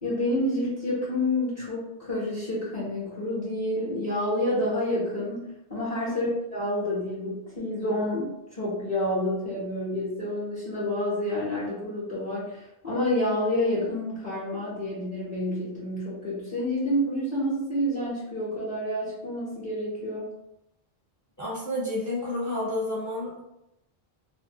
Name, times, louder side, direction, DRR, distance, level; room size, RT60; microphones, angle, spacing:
voice 1, 0.0-20.3, left 1 dB, 40° left, -10 dB, 0.9 m, -29 dB
voice 2, 21.4-23.4, left 1 dB, 25° left, -6 dB, 0.5 m, -30 dB
2.6 x 2.1 x 2.7 m, 0.87 s
omnidirectional pair, 1.0 m